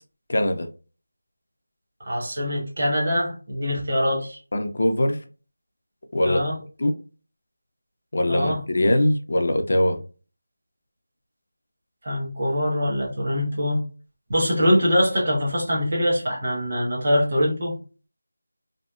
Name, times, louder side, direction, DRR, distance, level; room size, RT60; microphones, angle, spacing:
voice 1, 0.3-0.7 4.5-5.2 6.1-6.4 6.8-6.9 8.1-10.0, left 1 dB, 40° left, 0.4 m, -22 dB
voice 2, 2.0-4.4 6.2-6.6 8.3-8.6 12.0-13.8 14.3-17.8, equal, 30° right, 0.9 m, -23 dB
2.8 x 2.1 x 2.2 m
figure-of-eight pair, 175°, 0 cm